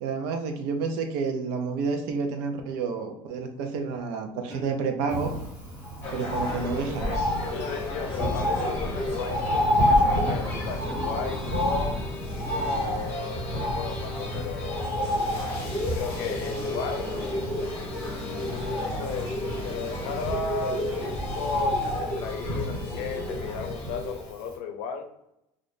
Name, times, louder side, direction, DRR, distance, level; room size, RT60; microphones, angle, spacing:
voice 1, 0.0-5.3 6.1-7.1 12.9-13.1, right 5 dB, 80° right, 5 dB, 0.6 m, -30 dB
sound 1, 4.5-5.0 6.5-7.0 8.4-8.9 10.9-11.4 12.4-12.9 14.3-14.7, equal, 40° right, 1.1 m, -45 dB
Bird, 5.1-24.2 24.5-24.6, equal, 15° right, 1.2 m, -30 dB
sound 2, 6.0-24.3, left 1 dB, 25° left, 0.9 m, -33 dB
voice 2, 7.5-12.0 12.5-14.9 15.9-17.2 18.1-25.1, left 5 dB, 70° left, 5 dB, 0.6 m, -35 dB
2.6 x 2.4 x 3.5 m, 0.82 s
cardioid pair, 175°, 10 cm